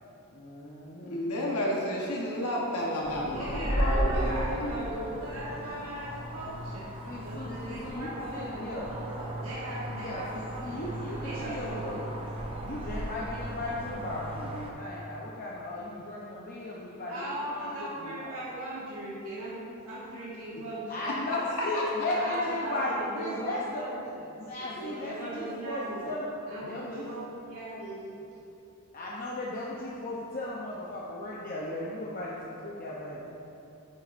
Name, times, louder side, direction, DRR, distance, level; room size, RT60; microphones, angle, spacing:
voice 1, 0.3-1.2 3.4-4.2 5.3-5.7 6.7-8.9 10.0-12.1 12.6-18.3 20.9-23.8 24.4-26.3 26.6-27.1 28.9-33.4, left 1 dB, 40° left, -5 dB, 0.7 m, -36 dB
voice 2, 1.1-4.7 21.3-21.4 21.7-21.8, left 1 dB, 85° left, -3 dB, 1.1 m, -31 dB
sound 1, 3.0-14.7, equal, 25° right, 0.7 m, -35 dB
voice 3, 3.2-6.9 7.2-10.8 11.2-12.0 17.1-21.1 22.1-24.2 24.6-26.0 26.5-28.2, right 1 dB, 75° right, -8 dB, 1.7 m, -38 dB
9.5 x 8.3 x 2.6 m, 2.8 s
head